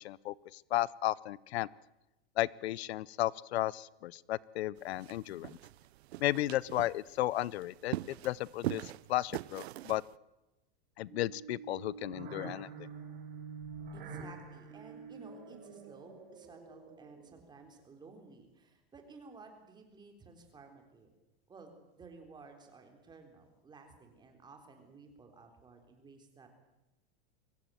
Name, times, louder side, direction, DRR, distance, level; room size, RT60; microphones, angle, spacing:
voice 1, 0.0-1.7 2.4-5.6 6.2-8.0 8.2-10.0 11.0-12.7, left 15 dB, 85° left, 23 dB, 0.8 m, -34 dB
sound 1, 4.8-10.1, right 15 dB, 85° right, 0.7 m, -42 dB
sound 2, 11.1-17.5, right 4 dB, 30° right, 6.0 m, -47 dB
voice 2, 13.9-21.1 21.5-26.5, right 4 dB, 15° right, 4 dB, 3.8 m, -55 dB
24.0 x 16.5 x 9.3 m, 0.97 s
supercardioid pair, 160°, 31 cm